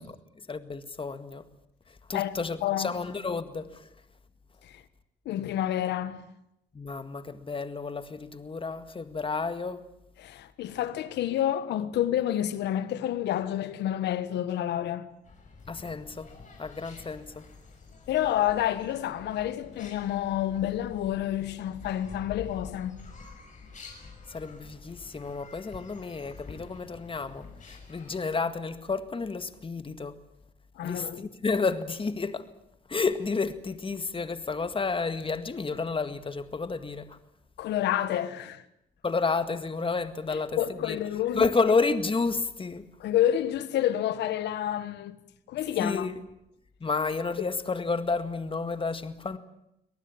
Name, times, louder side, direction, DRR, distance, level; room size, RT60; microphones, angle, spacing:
voice 1, 0.5-1.5 2.1-3.8 6.7-9.8 15.7-16.3 16.6-17.4 24.3-30.2 30.8-32.4 32.9-37.2 39.0-41.0 41.4-42.9 45.8-46.2 46.8-49.4, left 4 dB, 30° left, 1.9 m, -31 dB
voice 2, 2.1-3.0 4.6-4.8 5.2-6.2 10.2-15.1 18.1-23.0 30.7-31.3 37.6-38.6 40.3-41.5 43.0-45.2 45.5-46.1, left 11 dB, 85° left, 1.5 m, -29 dB
sound 1, 15.2-28.3, left 4 dB, 45° left, 6.7 m, -48 dB
24.5 x 18.5 x 8.7 m
cardioid pair, 75°, 17 cm